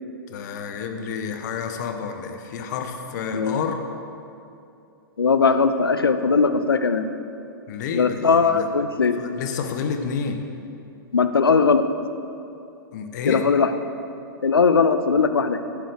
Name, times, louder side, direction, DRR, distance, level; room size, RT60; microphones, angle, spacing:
voice 1, 0.3-3.8 7.7-8.7 9.2-10.4 12.9-13.4, left 6 dB, 55° left, 6 dB, 1.0 m, -29 dB
voice 2, 5.2-7.1 7.9-9.2 11.1-11.8 13.3-13.7 14.4-15.7, left 5 dB, 85° left, 10 dB, 0.5 m, -19 dB
14.0 x 8.2 x 3.4 m, 2.7 s
figure-of-eight pair, 110°, 12 cm